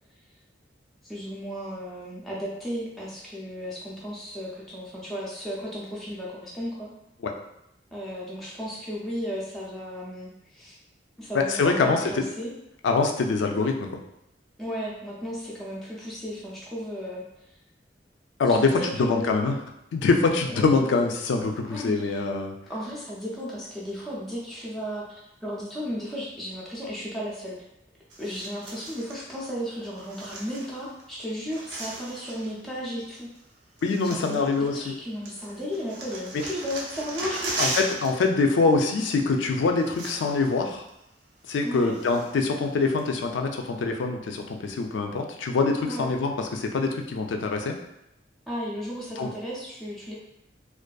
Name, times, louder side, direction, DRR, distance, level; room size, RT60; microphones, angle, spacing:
voice 1, 1.0-6.9 7.9-10.7 11.2-12.5 14.6-17.2 18.5-19.5 20.5-20.6 21.7-22.2 22.7-27.5 28.2-33.3 34.0-37.8 41.6-41.9 45.9-46.1 48.5-50.1, equal, ahead, -7 dB, 0.4 m, -34 dB
voice 2, 11.3-12.2 12.8-13.9 18.4-19.6 19.9-22.5 33.8-34.9 37.6-40.8 41.5-47.8 49.2-49.3, left 4 dB, 85° left, 3 dB, 0.3 m, -24 dB
sound 1, 28.1-29.2 30.0-31.0 31.3-32.5 33.4-33.5 33.8-35.0 35.3-38.3 38.5-38.7 39.5-39.6 39.8-40.5 40.9-41.0 41.5-42.5 43.0-43.1, right 2 dB, 75° right, 0.5 m, -36 dB
2.5 x 2.3 x 2.2 m, 0.81 s
head